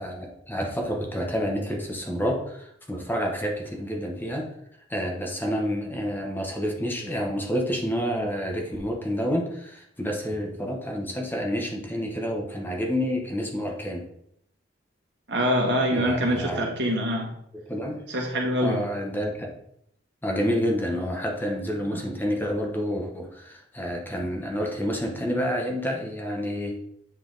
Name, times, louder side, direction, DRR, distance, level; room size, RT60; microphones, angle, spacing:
voice 1, 0.0-4.5 4.9-14.0 15.9-16.6 17.5-18.0 18.6-19.5 20.2-26.8, equal, 10° left, 1 dB, 0.9 m, -29 dB
voice 2, 15.3-17.3 18.1-18.8 21.9-22.0, equal, 80° right, 0 dB, 1.5 m, -25 dB
8.0 x 3.4 x 3.8 m, 0.74 s
head